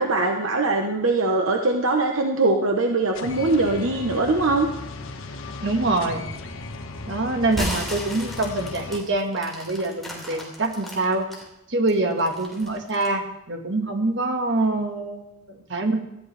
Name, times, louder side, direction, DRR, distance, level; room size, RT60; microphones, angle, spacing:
voice 1, 0.0-4.7, right 2 dB, 75° right, 2 dB, 1.1 m, -22 dB
sound 1, 3.1-9.0, left 2 dB, 75° left, 1.3 m, -36 dB
voice 2, 5.6-6.2 7.1-11.2 11.7-16.0, right 2 dB, 55° right, 4 dB, 1.7 m, -25 dB
sound 2, 7.5-11.4 11.9-13.2, left 1 dB, ahead, 3.3 m, -34 dB
18.5 x 14.5 x 3.4 m, 0.85 s
head